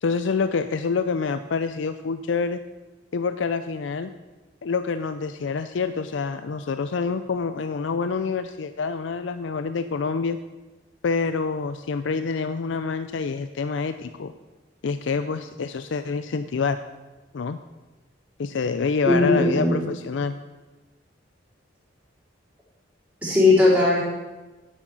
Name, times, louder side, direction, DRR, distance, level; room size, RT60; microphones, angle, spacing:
voice 1, 0.0-2.6 3.1-4.1 4.6-10.4 11.0-14.3 14.8-16.8 17.3-17.6 18.4-20.4, left 5 dB, 80° left, 11 dB, 0.4 m, -27 dB
voice 2, 19.1-19.8 23.2-24.0, left 2 dB, 10° right, -7 dB, 3.9 m, -18 dB
10.5 x 8.0 x 6.1 m, 1.2 s
head